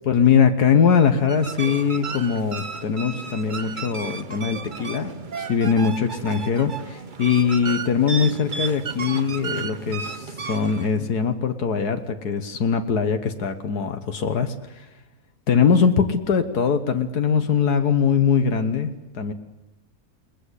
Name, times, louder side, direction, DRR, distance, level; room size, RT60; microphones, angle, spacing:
voice 1, 0.1-14.9 15.5-19.3, left 6 dB, 85° left, 8 dB, 1.9 m, -21 dB
sound 1, 1.3-10.9, right 5 dB, 35° right, 1.0 m, -33 dB
29.0 x 20.0 x 8.3 m, 0.97 s
omnidirectional pair, 1.6 m